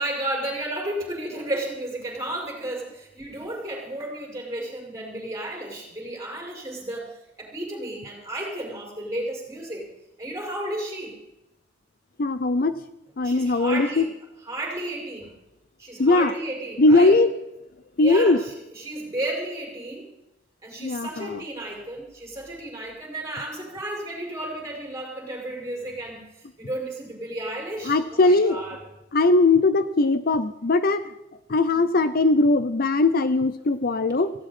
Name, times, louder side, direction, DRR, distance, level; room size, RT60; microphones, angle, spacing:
voice 1, 0.0-7.1 7.4-9.9 10.2-11.1 13.2-14.0 14.4-15.3 15.8-17.1 18.0-20.1 20.6-26.2 26.6-28.8, right 1 dB, 15° right, -2 dB, 5.9 m, -33 dB
voice 2, 12.2-12.7 13.2-14.1 16.0-16.3 16.8-17.3 18.0-18.4 20.8-21.4 27.9-28.6 29.1-31.1 31.5-34.3, left 2 dB, 55° left, 13 dB, 0.6 m, -20 dB
17.5 x 16.5 x 4.3 m, 0.89 s
head